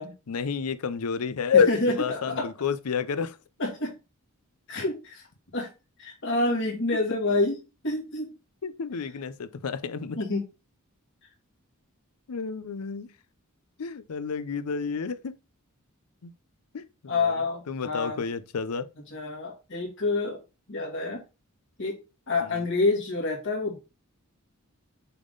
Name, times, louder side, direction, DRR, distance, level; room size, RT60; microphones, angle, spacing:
voice 1, 0.3-3.4 8.6-10.2 12.3-13.1 13.8-15.3 16.2-16.3 16.7-17.4 17.7-18.9 22.4-22.7, left 6 dB, 80° left, 0.5 m, -29 dB
voice 2, 1.7-2.5 3.6-4.0 4.7-5.3 5.5-5.7 6.0-7.6 7.8-8.3 10.2-10.5 17.1-18.2 19.1-20.4 20.7-21.2 21.8-22.0 22.3-23.8, left 2 dB, 60° left, 2.2 m, -27 dB
6.7 x 3.6 x 3.9 m
head